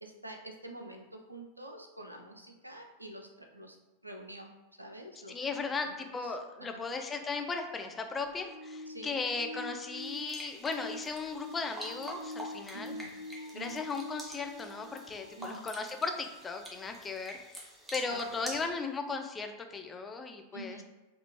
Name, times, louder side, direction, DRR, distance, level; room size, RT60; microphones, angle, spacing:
voice 1, 0.0-3.8 4.0-4.5 4.8-5.6 5.8-5.9 6.2-6.9 8.9-9.2 12.7-13.1 13.5-13.8 15.4-15.7 18.1-18.5 20.5-20.8, right 1 dB, 85° right, 3 dB, 0.4 m, -47 dB
voice 2, 5.3-12.9 13.5-17.4 17.9-20.8, left 4 dB, 20° left, 5 dB, 0.3 m, -36 dB
sound 1, 8.1-15.7 16.4-16.5 17.5-17.6, left 1 dB, 75° left, 0.6 m, -46 dB
sound 2, 10.0-18.7, right 1 dB, 10° right, 0.7 m, -47 dB
3.5 x 2.4 x 2.8 m, 1.1 s
figure-of-eight pair, 90°, 0 cm